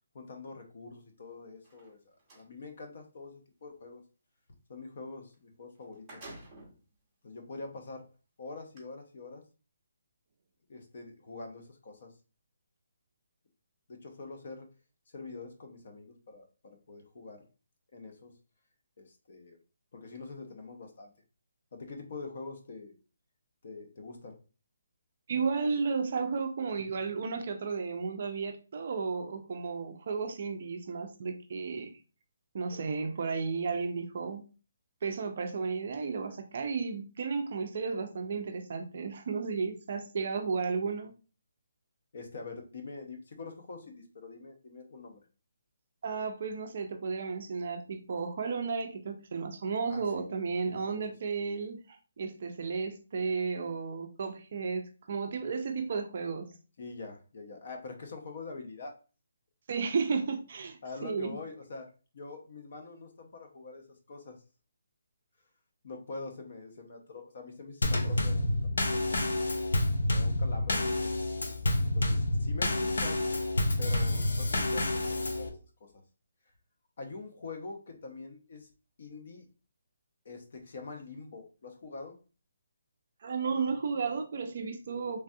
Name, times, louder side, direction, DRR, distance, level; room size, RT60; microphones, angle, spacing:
voice 1, 0.1-2.0 2.3-4.0 4.7-6.2 7.2-8.0 8.4-9.4 10.7-12.1 13.9-14.7 15.1-17.4 17.9-18.3 19.0-19.6 19.9-21.1 21.7-23.0 23.6-24.4 42.1-45.2 49.9-50.3 50.6-51.3 56.8-58.9 60.8-61.9 62.1-64.4 65.8-69.3 70.1-71.1 71.8-73.2 73.8-75.5 75.8-76.0 77.0-78.7 79.0-79.5 80.2-82.2, left 3 dB, 45° left, 4 dB, 0.6 m, -45 dB
sound 1, 1.5-2.5 5.3-5.4 5.7-6.8 7.5-7.6 8.6-8.8, right 2 dB, 10° right, 0.9 m, -50 dB
voice 2, 25.3-31.9 32.5-34.4 35.0-41.1 46.0-56.5 59.7-61.4 83.2-85.2, right 5 dB, 40° right, 5 dB, 0.4 m, -33 dB
Drum kit / Snare drum / Bass drum, 67.8-75.5, left 1 dB, 85° left, 0.6 m, -28 dB
3.3 x 2.3 x 2.6 m, 0.34 s
hypercardioid pair, 175°, 0 cm